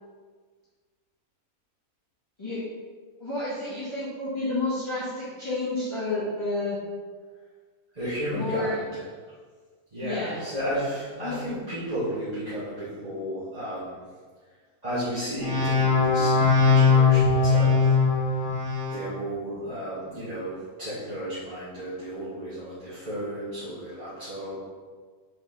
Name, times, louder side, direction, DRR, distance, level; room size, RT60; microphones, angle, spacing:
voice 1, 3.2-6.8 8.3-8.8 10.0-10.4 11.2-11.4, left 2 dB, 20° left, -12 dB, 1.8 m, -30 dB
voice 2, 8.0-9.0 9.9-14.0 14.8-17.9 18.3-18.4 18.9-24.6, equal, 25° right, -13 dB, 1.8 m, -33 dB
sound 1, 15.4-19.0, left 4 dB, 35° left, 1.7 m, -20 dB
4.6 x 4.4 x 5.5 m, 1.5 s
omnidirectional pair, 1.5 m